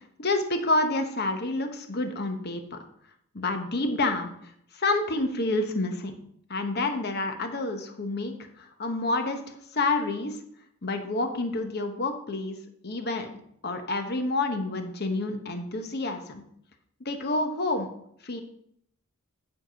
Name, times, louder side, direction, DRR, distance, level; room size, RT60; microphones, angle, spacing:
voice 1, 0.2-2.8 3.3-6.1 6.5-10.4 10.8-12.6 12.8-13.3 13.6-16.4 17.0-17.9 18.2-18.4, left 2 dB, 45° left, 6 dB, 1.0 m, -28 dB
9.1 x 4.8 x 5.0 m, 0.71 s
head